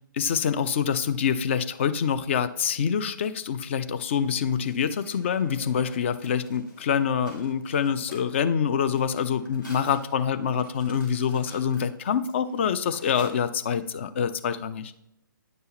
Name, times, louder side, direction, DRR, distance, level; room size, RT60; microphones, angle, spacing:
voice 1, 0.2-14.9, left 7 dB, 35° left, 12 dB, 0.4 m, -26 dB
Mechanisms, 4.2-13.9, left 2 dB, 65° left, 2.7 m, -50 dB
9.6 x 5.4 x 3.0 m, 0.84 s
figure-of-eight pair, 130°, 11 cm